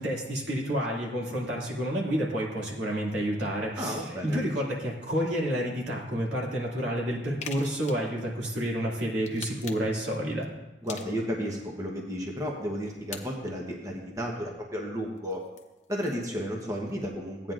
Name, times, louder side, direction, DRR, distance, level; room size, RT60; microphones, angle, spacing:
voice 1, 0.0-10.5, equal, 80° right, -3 dB, 2.3 m, -30 dB
voice 2, 3.8-4.4 10.8-15.4 15.9-17.5, equal, 20° right, 0 dB, 1.0 m, -33 dB
sound 1, 7.4-8.1 9.2-10.0 10.9-11.5 13.1-13.2 15.2-16.3, left 6 dB, 40° left, 0.8 m, -43 dB
16.0 x 9.1 x 2.5 m, 1.0 s
head